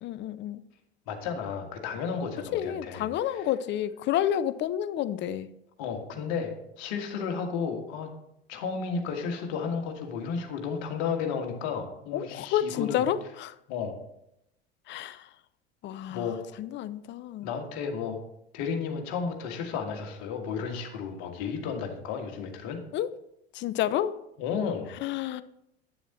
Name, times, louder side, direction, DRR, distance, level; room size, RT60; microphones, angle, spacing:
voice 1, 0.0-0.6 2.5-5.5 12.1-13.5 14.9-15.3 15.8-17.5 22.9-23.1 23.5-24.1 25.0-25.4, left 11 dB, 35° left, 15 dB, 0.5 m, -30 dB
voice 2, 1.1-3.5 5.8-8.1 8.5-13.0 13.7-13.9 16.1-16.4 17.4-18.2 18.5-22.8 24.4-24.9, left 6 dB, 55° left, 3 dB, 1.7 m, -33 dB
9.4 x 7.0 x 4.3 m, 0.81 s
figure-of-eight pair, 75°, 32 cm